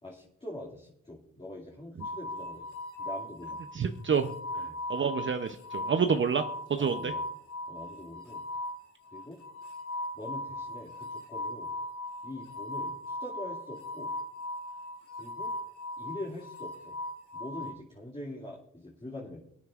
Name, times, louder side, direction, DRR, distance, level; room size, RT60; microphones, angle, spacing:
voice 1, 0.0-2.7 3.0-3.6 4.5-4.8 6.8-7.2 7.7-8.4 9.1-9.4 10.1-11.7 12.2-14.1 15.2-15.5 16.0-17.0 17.3-19.4, left 1 dB, 20° left, -4 dB, 2.5 m, -43 dB
sound 1, 2.0-17.7, left 1 dB, 70° left, 2.4 m, -38 dB
voice 2, 3.7-4.3 4.9-6.4 6.7-7.1, right 6 dB, 40° right, 7 dB, 0.8 m, -28 dB
23.5 x 9.2 x 2.5 m, 0.70 s
supercardioid pair, 60°, 32 cm